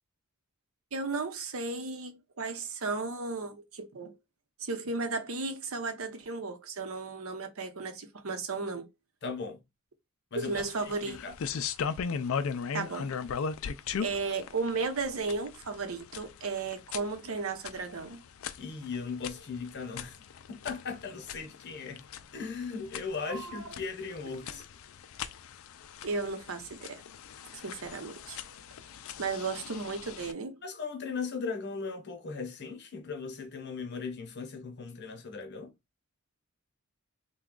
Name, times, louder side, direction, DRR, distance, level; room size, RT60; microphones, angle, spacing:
voice 1, 0.9-4.1 4.6-8.9 10.4-11.2 12.7-13.1 14.0-18.2 23.3-23.6 26.0-27.0 27.6-28.4 29.2-30.6, right 4 dB, 70° right, 0.7 m, -34 dB
voice 2, 9.2-9.6 10.3-10.6 11.0-11.3 18.6-20.2 20.5-22.0 22.3-24.7 30.6-35.7, left 5 dB, 50° left, 0.9 m, -38 dB
sound 1, 10.4-30.3, left 6 dB, 65° left, 0.4 m, -39 dB
3.4 x 2.3 x 3.7 m
head